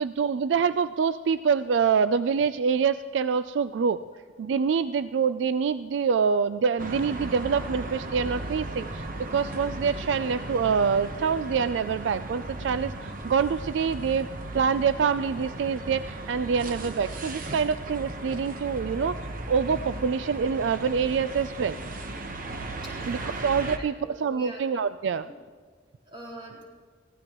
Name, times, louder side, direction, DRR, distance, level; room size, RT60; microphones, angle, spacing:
voice 1, 0.0-4.0 4.4-14.3 14.5-19.2 19.5-21.8 23.1-25.3, right 6 dB, 75° right, 13 dB, 0.4 m, -26 dB
sound 1, 6.8-23.8, right 2 dB, 50° right, 1.1 m, -36 dB
voice 2, 22.8-23.5 23.8-25.4 26.1-26.6, right 1 dB, 30° right, -4 dB, 4.0 m, -44 dB
23.0 x 16.0 x 3.0 m, 1.5 s
head